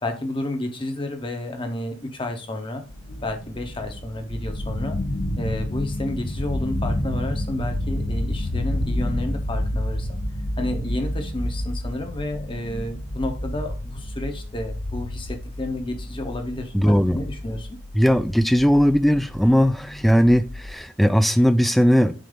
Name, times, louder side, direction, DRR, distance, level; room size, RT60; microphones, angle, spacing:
voice 1, 0.0-2.8 3.2-5.0 5.4-10.2 10.6-17.7, left 1 dB, 25° left, 1.0 m, -31 dB
sound 1, 2.9-20.7, left 1 dB, 60° left, 0.9 m, -30 dB
voice 2, 16.7-17.2 18.0-22.1, equal, ahead, 0.3 m, -18 dB
7.5 x 2.8 x 5.2 m
head